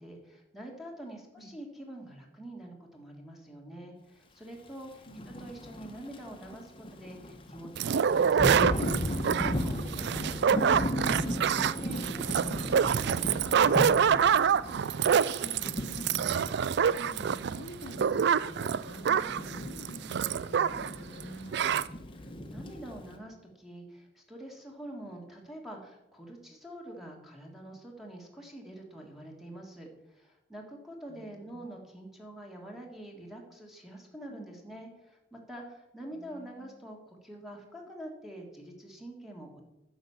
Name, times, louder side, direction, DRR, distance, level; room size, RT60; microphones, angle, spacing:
voice 1, 0.0-5.0 5.4-13.7 22.1-39.6, right 1 dB, ahead, 0 dB, 1.6 m, -46 dB
Thunder / Rain, 5.0-23.1, left 1 dB, 25° left, 1.0 m, -37 dB
voice 2, 5.1-5.5 11.6-12.2 15.3-16.3 17.0-21.9 31.1-31.6 34.3-34.5 36.1-36.8, equal, 50° left, 1 dB, 1.1 m, -48 dB
sound 1, 7.8-21.0 21.2-21.3 21.5-21.9, right 7 dB, 55° right, 0.3 m, -26 dB
10.0 x 6.1 x 6.9 m, 0.92 s
head